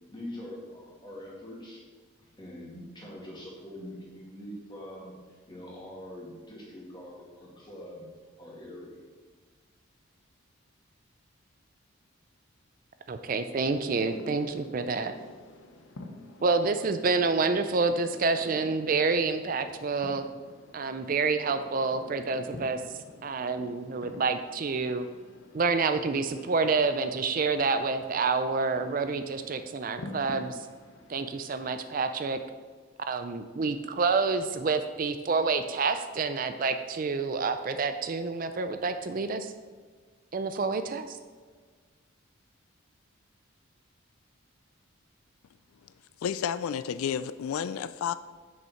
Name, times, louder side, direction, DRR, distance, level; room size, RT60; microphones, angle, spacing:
voice 1, 0.1-1.8 2.4-8.0 8.4-9.0, left 1 dB, 20° left, -4 dB, 2.1 m, -43 dB
voice 2, 13.1-15.1 16.4-20.2 20.7-22.8 23.2-25.1 25.5-30.7 31.1-32.4 33.1-39.5 40.3-41.2, right 4 dB, 40° right, 9 dB, 0.4 m, -28 dB
sound 1, 13.5-31.9, left 2 dB, 60° left, 0.8 m, -49 dB
voice 3, 46.2-48.1, left 8 dB, 85° left, 14 dB, 0.3 m, -31 dB
8.0 x 6.4 x 4.4 m, 1.5 s
head